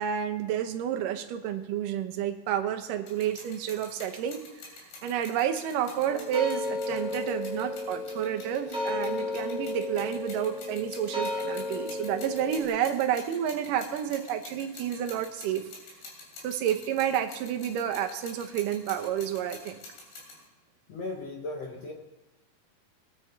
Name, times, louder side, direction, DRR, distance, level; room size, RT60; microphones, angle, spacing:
voice 1, 0.0-4.4 5.0-15.7 16.4-19.8, right 10 dB, 70° right, 7 dB, 2.3 m, -30 dB
sound 1, 3.1-20.5, left 3 dB, 85° left, 4.9 m, -47 dB
sound 2, 6.1-12.6, left 2 dB, 5° right, 1.0 m, -33 dB
voice 2, 20.9-21.9, left 2 dB, 65° left, 0 dB, 1.6 m, -36 dB
19.5 x 9.0 x 4.5 m, 1.2 s
omnidirectional pair, 4.4 m